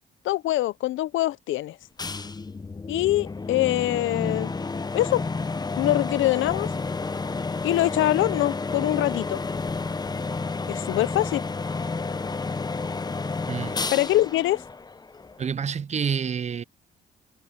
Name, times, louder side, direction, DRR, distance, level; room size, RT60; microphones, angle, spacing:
voice 1, 0.2-1.8 2.9-4.5 4.9-5.2 5.8-6.7 7.6-9.4 10.7-11.4 13.9-14.6, left 15 dB, 75° left, 0.6 m, -24 dB
sound 1, 2.0-15.5, left 4 dB, 20° left, 0.8 m, -31 dB
voice 2, 13.5-13.9 15.4-16.6, right 7 dB, 35° right, 0.6 m, -28 dB
cardioid pair, 90°, 20 cm